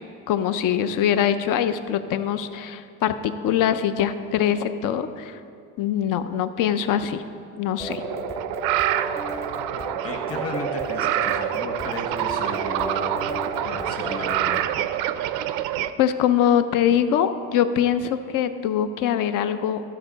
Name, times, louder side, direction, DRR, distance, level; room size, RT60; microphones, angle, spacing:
voice 1, 0.3-5.4 5.8-7.2 7.6-8.0 16.0-19.8, left 9 dB, 60° left, 11 dB, 0.6 m, -23 dB
sound 1, 7.8-14.7, equal, 10° left, 0.3 m, -35 dB
sound 2, 7.9-15.9, right 12 dB, 75° right, 0.5 m, -27 dB
voice 2, 9.7-14.6, left 2 dB, 40° left, 2 dB, 1.6 m, -34 dB
13.0 x 5.4 x 3.9 m, 2.5 s
supercardioid pair, 100°, 37 cm